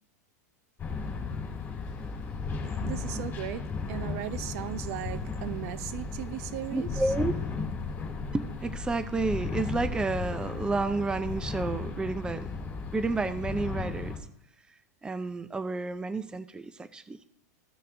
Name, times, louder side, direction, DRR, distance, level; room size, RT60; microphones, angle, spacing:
sound 1, 0.8-14.2, left 4 dB, 20° left, 2.5 m, -35 dB
voice 1, 2.6-6.9, right 13 dB, 60° right, 0.6 m, -37 dB
voice 2, 6.7-7.3 8.3-12.5 12.9-14.1 15.0-17.2, right 3 dB, 10° right, 0.5 m, -30 dB
15.5 x 6.4 x 2.7 m
hypercardioid pair, 115°, 9 cm